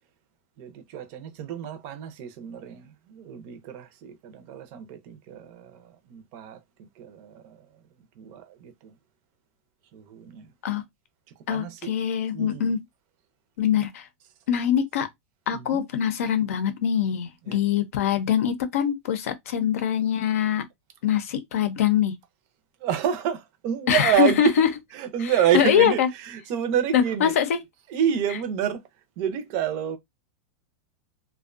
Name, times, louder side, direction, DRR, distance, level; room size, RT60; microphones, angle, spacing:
voice 1, 0.6-6.6 7.0-7.8 8.2-8.9 9.9-10.5 11.5-11.9 12.3-12.8 15.5-15.9 17.4-17.6 22.8-24.6 24.9-27.4 27.9-28.8 29.2-30.0, right 9 dB, 40° right, 0.5 m, -28 dB
voice 2, 11.5-12.8 13.6-14.1 14.5-15.1 15.5-20.6 21.0-22.1 23.9-24.7 25.2-26.1 26.9-27.6, left 9 dB, 75° left, 0.6 m, -23 dB
2.5 x 2.2 x 2.4 m
supercardioid pair, 155°, 8 cm